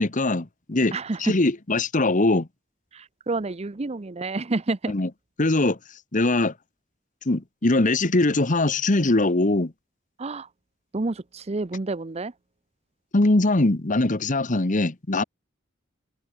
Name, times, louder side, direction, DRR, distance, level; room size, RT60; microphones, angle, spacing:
voice 1, 0.0-2.5 4.9-5.1 5.4-5.8 6.1-6.5 7.3-9.7 13.1-15.2, left 2 dB, 40° left, 1.2 m, -22 dB
voice 2, 0.9-1.3 2.9-4.9 10.2-10.5 10.9-12.3, right 3 dB, 35° right, 0.7 m, -29 dB
head